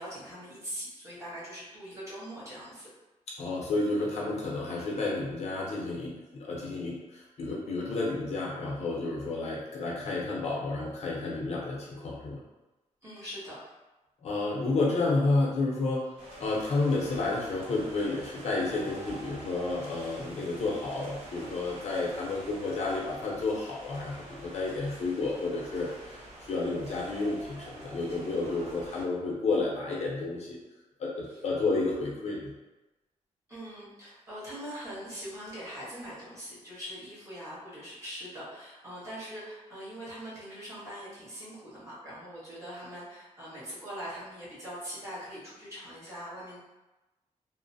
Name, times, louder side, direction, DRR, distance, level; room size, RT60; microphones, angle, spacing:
voice 1, 0.0-2.9 13.0-13.7 33.5-46.6, equal, 20° right, -11 dB, 1.2 m, -42 dB
voice 2, 3.4-12.4 14.2-16.0 16.4-26.2 26.5-30.6 31.0-32.5, left 3 dB, 60° left, -4 dB, 0.6 m, -31 dB
sound 1, 16.2-29.0, right 1 dB, 60° right, 0.8 m, -47 dB
3.0 x 2.1 x 2.5 m, 1.1 s
wide cardioid pair, 160°, 13 cm